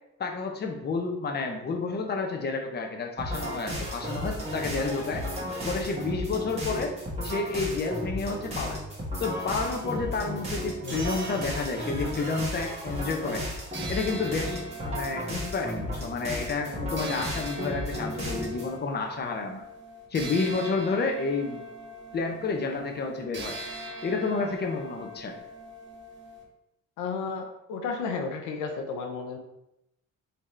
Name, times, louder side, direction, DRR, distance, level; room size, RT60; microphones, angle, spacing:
voice 1, 0.2-5.2 5.6-6.9 7.2-8.8 9.2-13.4 13.9-19.6 20.1-21.6 22.1-23.6 24.0-25.3, left 4 dB, 35° left, 3 dB, 0.7 m, -30 dB
sound 1, 3.2-18.7, left 1 dB, 20° right, 1.4 m, -34 dB
sound 2, 9.3-13.0 13.7-26.4, right 1 dB, 40° right, 0.9 m, -42 dB
voice 2, 10.8-11.3 27.0-29.4, left 4 dB, 90° left, 3 dB, 0.6 m, -33 dB
3.7 x 2.9 x 3.2 m, 0.86 s
cardioid pair, 90°, 30 cm